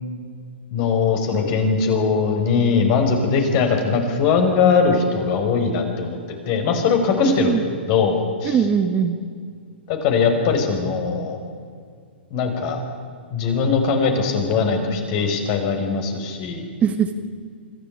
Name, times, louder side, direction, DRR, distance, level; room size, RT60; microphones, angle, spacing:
voice 1, 0.7-7.6 7.9-8.6 9.9-11.4 12.3-12.8 13.3-16.7, left 5 dB, 45° left, 4 dB, 5.1 m, -20 dB
voice 2, 7.2-7.6 8.4-9.2 16.8-17.1, right 7 dB, 25° right, 7 dB, 1.6 m, -20 dB
25.5 x 15.0 x 8.9 m, 2.1 s
hypercardioid pair, 125°, 6 cm